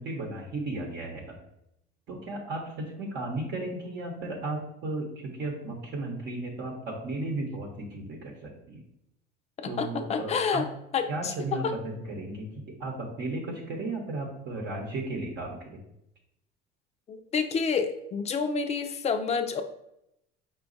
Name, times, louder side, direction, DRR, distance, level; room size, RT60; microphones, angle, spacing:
voice 1, 0.0-1.4 2.1-8.8 9.7-10.7 11.1-15.8, right 2 dB, 55° right, 0 dB, 0.9 m, -35 dB
voice 2, 9.6-10.6 10.9-11.3 11.6-11.7 17.1-19.6, left 5 dB, 30° left, 7 dB, 0.4 m, -28 dB
4.9 x 2.3 x 3.9 m, 0.81 s
cardioid pair, 120°, 21 cm